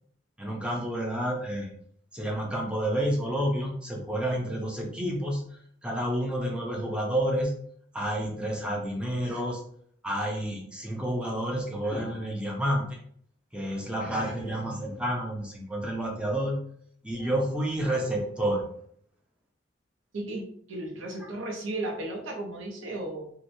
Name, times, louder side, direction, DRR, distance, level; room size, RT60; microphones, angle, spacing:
voice 1, 0.4-1.7 2.1-5.4 5.8-7.5 7.9-9.6 10.0-13.0 13.5-16.6 17.0-18.6 21.2-21.3, right 1 dB, 5° right, -1 dB, 0.4 m, -29 dB
voice 2, 20.1-23.3, right 1 dB, 90° right, 0 dB, 0.7 m, -35 dB
2.8 x 2.1 x 2.6 m, 0.63 s
head